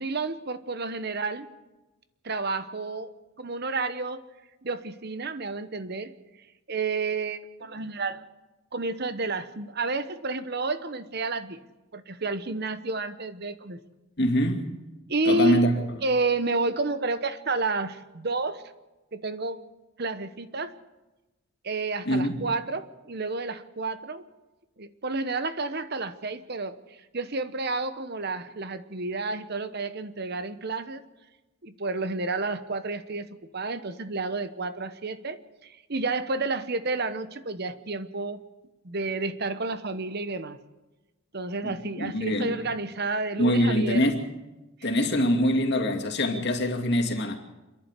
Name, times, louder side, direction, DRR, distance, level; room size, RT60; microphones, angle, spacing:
voice 1, 0.0-1.5 2.2-3.1 3.4-4.2 4.6-6.1 6.7-8.3 8.7-11.6 11.9-13.8 15.1-15.7 16.0-18.6 19.1-19.6 20.0-20.8 21.6-24.3 24.8-26.8 27.1-31.0 31.6-38.4 38.8-40.6 41.3-44.1 44.8-45.1, right 3 dB, 50° right, 1.1 m, -30 dB
voice 2, 14.2-14.7 15.3-15.7 22.1-22.5 41.6-41.7 42.0-42.6 43.4-44.2 44.8-47.4, equal, 55° left, 2.6 m, -24 dB
27.5 x 11.5 x 8.3 m
head